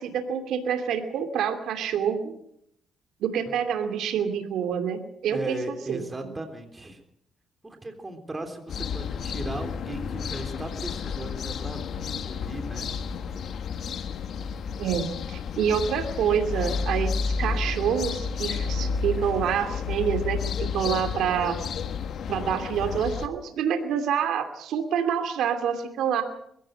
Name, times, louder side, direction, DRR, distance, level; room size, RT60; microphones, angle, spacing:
voice 1, 0.0-2.3 3.2-6.0 14.8-21.6 22.3-26.2, right 8 dB, 80° right, 7 dB, 2.6 m, -27 dB
voice 2, 5.3-7.0 7.6-12.9 13.1-13.2, right 2 dB, 20° right, 6 dB, 3.5 m, -37 dB
sound 1, 8.7-23.3, left 6 dB, 65° left, 1.6 m, -31 dB
22.0 x 16.0 x 7.8 m, 0.72 s
cardioid pair, 90°, 0 cm